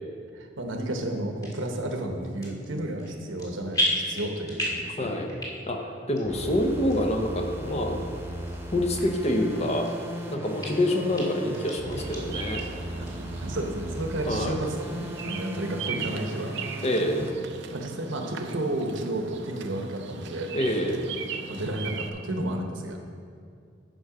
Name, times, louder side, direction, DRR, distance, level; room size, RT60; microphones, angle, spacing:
voice 1, 0.3-5.1 13.0-13.1 13.4-16.8 17.7-20.5 21.1-23.0, right 1 dB, 85° right, 3 dB, 1.1 m, -32 dB
sound 1, 1.4-1.6 2.2-2.7 3.0-3.5 3.7-4.9 5.3-5.8 6.2-6.3 6.9-7.0 7.6-7.7 8.4-8.6 8.9-9.0 9.5-10.2 10.6-10.7 11.2-11.3 11.5-12.2 12.6-12.7 13.0-13.1 13.5-14.0 14.4-14.5, left 1 dB, 20° left, 1.9 m, -31 dB
voice 2, 5.0-5.3 5.7-8.0 8.7-9.9 10.3-12.6 14.3-14.6 16.8-17.2 20.5-21.0, left 1 dB, 35° left, 3 dB, 0.9 m, -26 dB
sound 2, 6.2-17.4, right 1 dB, 15° right, 0.9 m, -37 dB
Bird vocalization bird call bird song, 12.0-22.1, right 6 dB, 65° right, 0.6 m, -39 dB
10.0 x 5.6 x 5.0 m, 2.3 s
head